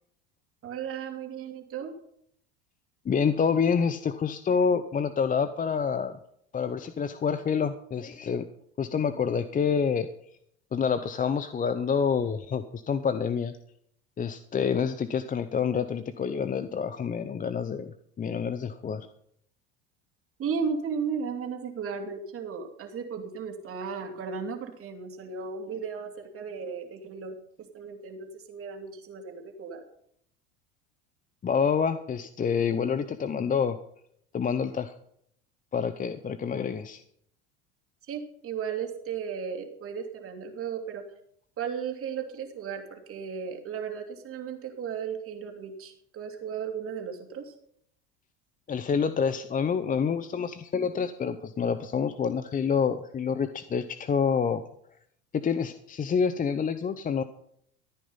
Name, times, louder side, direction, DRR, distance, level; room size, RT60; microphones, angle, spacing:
voice 1, 0.6-1.9 20.4-27.4 27.7-29.8 38.0-41.0 41.6-47.5, right 6 dB, 40° right, 3 dB, 2.9 m, -35 dB
voice 2, 3.0-6.2 6.5-8.4 8.8-10.1 10.7-13.6 14.2-19.1 31.4-33.8 34.3-34.9 35.7-37.0 48.7-54.6 55.4-57.2, left 6 dB, 25° left, 11 dB, 0.7 m, -27 dB
14.5 x 9.2 x 5.5 m, 0.70 s
hypercardioid pair, 85°, 34 cm